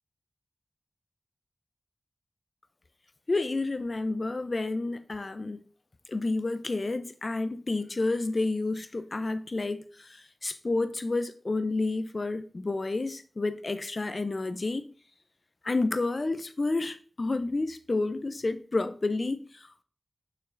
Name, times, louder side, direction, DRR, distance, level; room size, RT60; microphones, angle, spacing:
voice 1, 3.3-5.6 6.1-14.9 15.6-19.8, left 2 dB, 50° left, 0.6 m, -30 dB
6.5 x 5.9 x 3.9 m
wide cardioid pair, 90°, 0 cm